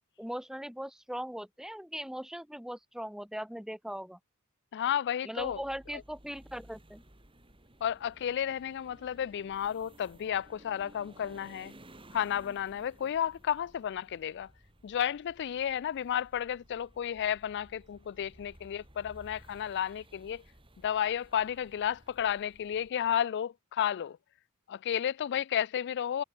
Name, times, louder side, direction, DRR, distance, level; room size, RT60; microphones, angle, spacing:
voice 1, 0.2-4.2 5.2-7.0, equal, ahead, 2.4 m, -39 dB
voice 2, 4.7-5.6 7.8-11.7 12.1-14.5 14.8-20.4 20.8-24.2 24.7-26.2, left 9 dB, 50° left, 0.3 m, -32 dB
sound 1, 5.4-22.9, right 1 dB, 25° right, 7.8 m, -57 dB
head